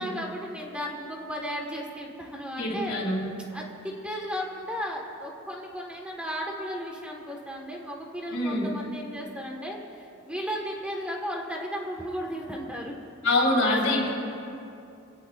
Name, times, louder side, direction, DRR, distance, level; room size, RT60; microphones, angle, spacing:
voice 1, 0.0-3.0 3.5-12.9, equal, 5° right, -1 dB, 1.6 m, -35 dB
voice 2, 2.6-3.2 8.3-8.7 13.2-14.1, left 1 dB, 70° left, -3 dB, 4.1 m, -24 dB
24.0 x 17.5 x 2.5 m, 2.7 s
head